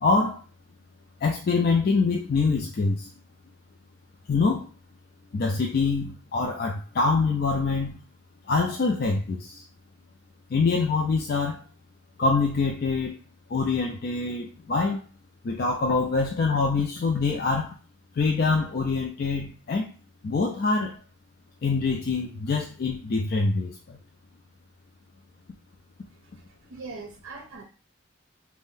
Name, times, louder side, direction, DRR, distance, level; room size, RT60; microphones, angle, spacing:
voice 1, 0.0-0.4 1.2-3.1 4.3-4.7 5.3-8.0 8.5-9.6 10.5-11.6 12.2-13.1 13.5-15.0 15.4-17.8 18.1-19.9 20.2-21.0 21.6-24.0, left 4 dB, 45° left, 0 dB, 0.3 m, -25 dB
voice 2, 26.1-27.6, right 3 dB, 80° right, 2 dB, 0.6 m, -42 dB
2.5 x 2.1 x 3.6 m, 0.34 s
head